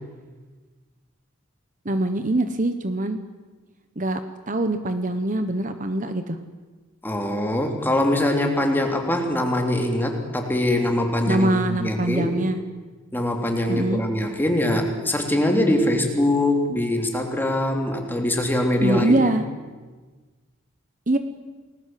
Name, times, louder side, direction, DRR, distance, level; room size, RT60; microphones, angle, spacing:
voice 1, 1.8-3.2 4.0-4.2 4.5-6.4 11.2-12.6 13.7-14.0 18.8-19.4 21.1-21.2, right 1 dB, 40° right, 9 dB, 1.2 m, -23 dB
voice 2, 7.0-12.4 13.1-19.3, left 1 dB, 10° left, 2 dB, 3.2 m, -23 dB
30.0 x 20.0 x 7.8 m, 1.3 s
head